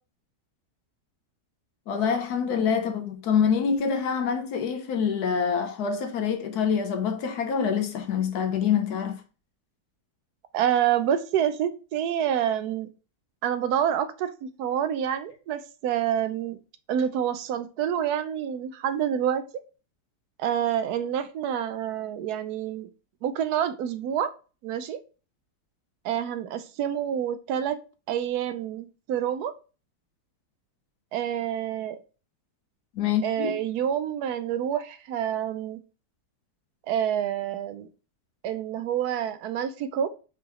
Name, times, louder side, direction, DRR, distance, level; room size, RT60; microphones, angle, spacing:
voice 1, 1.9-9.2 33.0-33.6, left 7 dB, 75° left, 1.3 m, -26 dB
voice 2, 10.5-12.9 13.4-16.6 16.9-19.4 20.4-22.9 23.2-24.3 24.6-25.0 26.0-27.8 28.1-29.5 31.1-32.0 33.2-35.8 36.9-37.9 38.4-40.1, right 9 dB, 80° right, 1.1 m, -27 dB
4.4 x 3.7 x 3.0 m
omnidirectional pair, 1.7 m